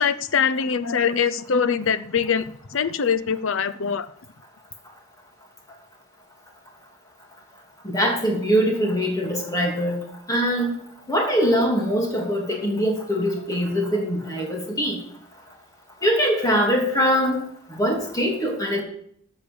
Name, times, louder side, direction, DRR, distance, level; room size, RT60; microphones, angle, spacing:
voice 1, 0.0-4.1, left 6 dB, 65° left, 14 dB, 0.7 m, -23 dB
voice 2, 7.8-10.0 10.3-10.7 11.1-15.0 16.0-17.4 17.7-18.8, equal, 15° left, 0 dB, 3.0 m, -22 dB
14.0 x 6.6 x 6.9 m, 0.68 s
head